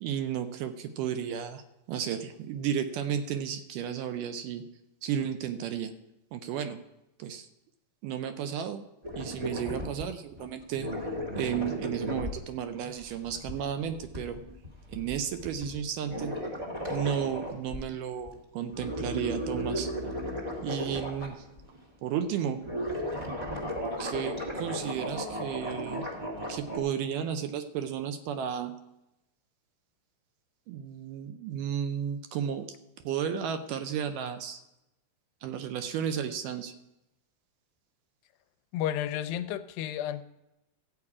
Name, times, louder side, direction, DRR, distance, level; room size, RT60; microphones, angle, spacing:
voice 1, 0.0-1.6 1.9-4.6 5.0-5.9 6.3-6.9 7.2-7.5 8.0-8.9 9.2-10.9 11.4-14.4 14.9-16.3 16.9-19.9 20.6-21.5 22.0-22.7 24.0-26.1 26.5-28.8 30.7-32.7 33.0-34.6 35.4-36.7, right 8 dB, 80° right, 9 dB, 2.0 m, -33 dB
sound 1, 9.0-10.1 10.3-10.4 10.7-17.8 18.2-18.3 18.6-21.8 22.6-26.8, equal, 35° right, 0.6 m, -35 dB
voice 2, 38.7-40.2, left 11 dB, 85° left, 10 dB, 2.3 m, -32 dB
14.0 x 8.6 x 4.8 m, 0.92 s
omnidirectional pair, 4.2 m